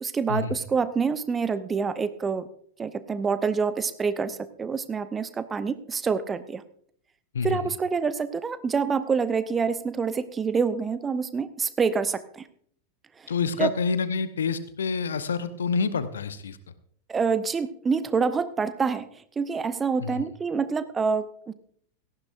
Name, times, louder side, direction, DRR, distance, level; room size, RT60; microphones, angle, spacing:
voice 1, 0.0-2.4 2.8-6.6 7.4-12.5 13.2-13.3 13.6-13.7 17.1-21.5, right 5 dB, 15° right, 14 dB, 0.7 m, -27 dB
voice 2, 7.3-7.7 13.3-16.6 20.0-20.2, left 5 dB, 65° left, 13 dB, 0.8 m, -28 dB
18.0 x 14.5 x 2.5 m, 0.62 s
figure-of-eight pair, 90°, 0 cm